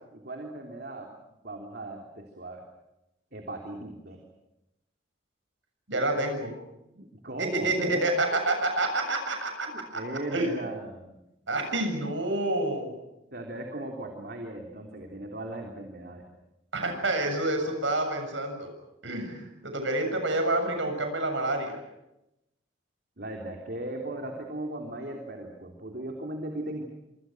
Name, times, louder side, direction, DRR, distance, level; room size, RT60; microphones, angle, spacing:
voice 1, 0.1-1.1 1.4-2.6 3.3-4.2 7.0-8.4 9.7-11.2 13.3-16.3 23.2-26.8, right 1 dB, 55° right, 2 dB, 3.4 m, -37 dB
voice 2, 5.9-6.5 7.4-10.0 10.3-10.5 11.5-13.0 16.7-18.7 19.0-21.8, right 2 dB, 75° right, 5 dB, 7.1 m, -28 dB
27.0 x 26.5 x 6.2 m, 0.88 s
head